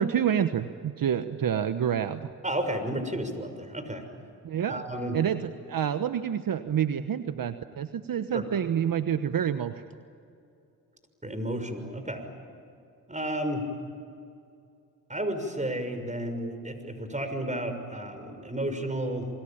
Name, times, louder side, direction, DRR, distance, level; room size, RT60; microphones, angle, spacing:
voice 1, 0.0-2.3 4.4-4.8 5.1-5.4 5.7-9.8, right 9 dB, 60° right, 10 dB, 1.2 m, -28 dB
voice 2, 2.4-4.0 4.7-5.2 8.3-8.5 11.2-12.3 13.1-13.6 15.1-19.3, right 1 dB, 20° right, 8 dB, 6.3 m, -32 dB
28.5 x 22.5 x 8.9 m, 2.5 s
supercardioid pair, 50°, 39 cm